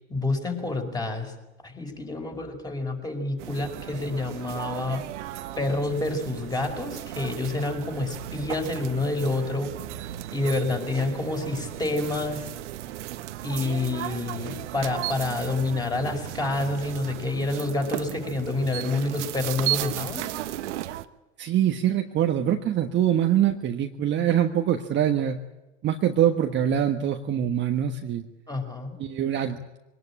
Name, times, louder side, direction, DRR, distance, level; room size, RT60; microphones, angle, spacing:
voice 1, 0.1-1.3 1.6-5.1 5.6-9.7 10.3-12.5 13.4-20.3 28.5-29.0, left 2 dB, 10° left, 4 dB, 5.1 m, -28 dB
sound 1, 3.4-21.1, right 14 dB, 65° right, 1.3 m, -35 dB
voice 2, 21.4-25.4 25.8-28.3 29.0-29.6, right 10 dB, 30° right, 4 dB, 1.4 m, -24 dB
23.5 x 19.0 x 8.7 m, 1.0 s
hypercardioid pair, 100°, 38 cm